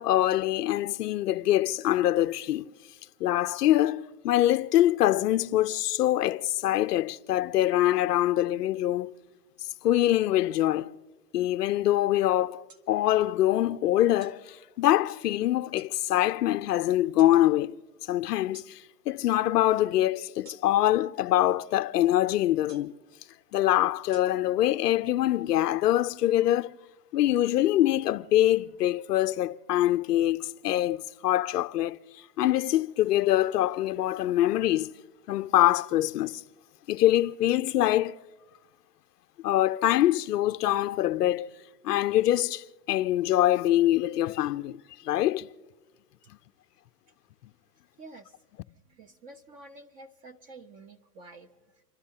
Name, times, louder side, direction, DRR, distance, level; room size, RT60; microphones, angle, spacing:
voice 1, 0.0-2.6 3.2-9.1 9.8-10.9 11.3-17.7 18.1-18.8 19.1-22.9 23.5-26.7 27.1-32.0 32.4-34.9 35.3-36.4 36.9-38.2 39.4-41.5 41.8-44.8 45.0-45.5, left 13 dB, 75° left, 0.6 m, -24 dB
sound 1, 12.7-12.9 14.2-14.4 15.8-15.9 17.2-17.4 18.5-18.7 20.4-20.9 22.7-23.0 24.1-24.2, right 3 dB, 80° right, 1.8 m, -52 dB
voice 2, 48.0-48.4 48.9-51.8, right 2 dB, 20° right, 0.4 m, -49 dB
28.5 x 12.5 x 2.8 m
hypercardioid pair, 105°, 48 cm